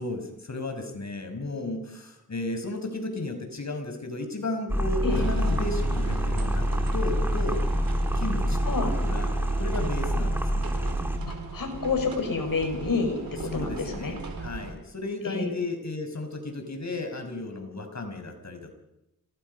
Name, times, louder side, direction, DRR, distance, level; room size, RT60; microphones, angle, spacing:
voice 1, 0.0-7.7 8.1-9.3 9.6-10.7 13.3-18.7, left 2 dB, 50° left, 6 dB, 5.6 m, -34 dB
sound 1, 4.7-11.2, equal, 5° right, 3.1 m, -26 dB
sound 2, 5.1-14.7, right 4 dB, 75° right, 4.6 m, -37 dB
voice 2, 11.3-13.2 13.5-14.1 15.2-15.5, left 4 dB, 70° left, 5 dB, 6.1 m, -28 dB
26.5 x 19.0 x 5.6 m, 0.85 s
cardioid pair, 55°, 35 cm